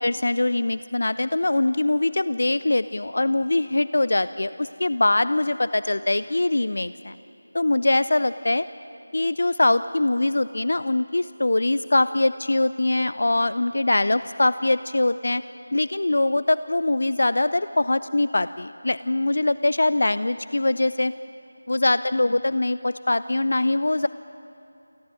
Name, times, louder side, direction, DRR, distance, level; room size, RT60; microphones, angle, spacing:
voice 1, 0.0-7.2 7.5-8.7 9.1-15.4 15.7-21.1 21.7-24.1, left 2 dB, 55° left, 15 dB, 0.5 m, -22 dB
28.5 x 24.5 x 6.4 m, 2.9 s
figure-of-eight pair, 165°, 0 cm